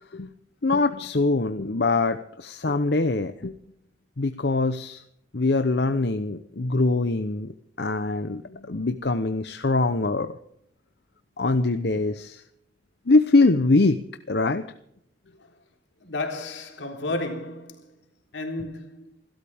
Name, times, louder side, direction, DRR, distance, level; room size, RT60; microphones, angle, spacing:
voice 1, 0.6-3.5 4.2-5.0 5.3-7.5 7.8-10.3 11.4-12.4 13.1-14.0 14.3-14.6, left 3 dB, 60° left, 0.8 m, -23 dB
voice 2, 16.0-17.8 18.3-19.2, left 2 dB, 80° left, 3.7 m, -32 dB
28.0 x 13.0 x 3.6 m
head